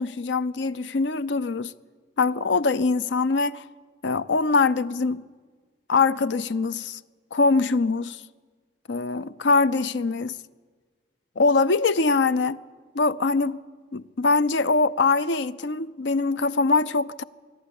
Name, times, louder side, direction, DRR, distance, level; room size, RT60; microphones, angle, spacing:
voice 1, 0.0-1.7 2.2-3.6 4.0-5.2 5.9-7.0 7.3-8.2 8.9-10.3 11.4-12.6 12.9-13.6 13.9-17.2, left 3 dB, 75° left, 0.6 m, -23 dB
26.5 x 11.5 x 10.0 m
head